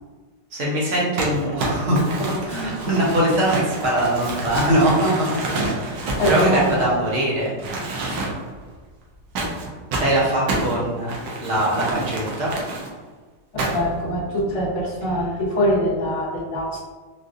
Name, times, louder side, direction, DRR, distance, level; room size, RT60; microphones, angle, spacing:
voice 1, 0.5-7.5 10.0-12.5, right 1 dB, 50° right, -6 dB, 1.0 m, -22 dB
Crumpling crinkling, 1.2-7.2 7.6-8.6 9.4-12.9 13.6-14.0, right 2 dB, 85° right, 1.4 m, -28 dB
voice 2, 6.2-7.0 13.5-16.8, equal, 35° left, -6 dB, 0.5 m, -23 dB
4.0 x 2.5 x 2.5 m, 1.4 s
omnidirectional pair, 1.9 m